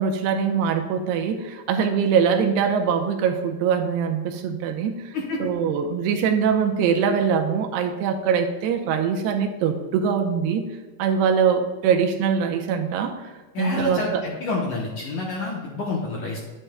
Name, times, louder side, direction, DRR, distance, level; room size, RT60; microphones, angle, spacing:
voice 1, 0.0-5.1 5.4-10.7 11.0-13.3 13.6-14.2, right 7 dB, 90° right, 6 dB, 2.7 m, -23 dB
voice 2, 13.6-16.4, left 3 dB, 75° left, -2 dB, 1.9 m, -28 dB
11.0 x 9.1 x 2.2 m, 1.3 s
omnidirectional pair, 4.7 m